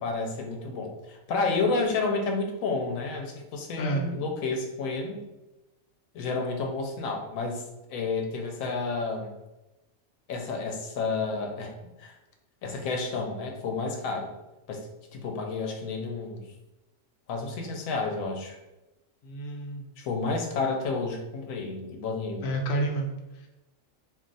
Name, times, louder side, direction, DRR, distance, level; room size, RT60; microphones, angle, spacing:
voice 1, 0.0-5.2 6.1-7.6 7.9-9.3 10.3-11.7 12.0-12.1 12.6-14.3 14.7-16.4 17.3-18.6 20.0-22.5, left 3 dB, 85° left, 3 dB, 1.0 m, -30 dB
voice 2, 3.8-4.1 19.2-19.9 22.4-23.5, right 1 dB, 55° left, 0 dB, 0.6 m, -30 dB
2.4 x 2.4 x 3.8 m, 0.99 s
omnidirectional pair, 1.4 m